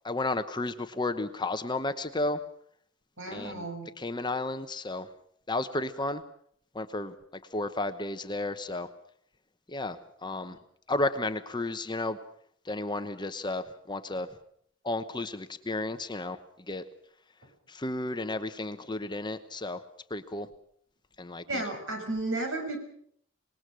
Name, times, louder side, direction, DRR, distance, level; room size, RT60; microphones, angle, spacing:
voice 1, 0.0-2.4 3.3-3.6 4.0-5.1 5.5-6.2 6.7-7.1 7.5-8.9 9.7-10.0 10.2-10.6 10.9-12.2 12.7-14.3 14.8-16.4 16.7-16.8 17.7-19.8 20.1-20.5 21.2-21.6, left 2 dB, 20° left, 10 dB, 1.0 m, -32 dB
voice 2, 3.2-3.9 21.5-22.8, right 2 dB, 65° right, 5 dB, 6.1 m, -33 dB
25.5 x 20.0 x 6.3 m, 0.66 s
head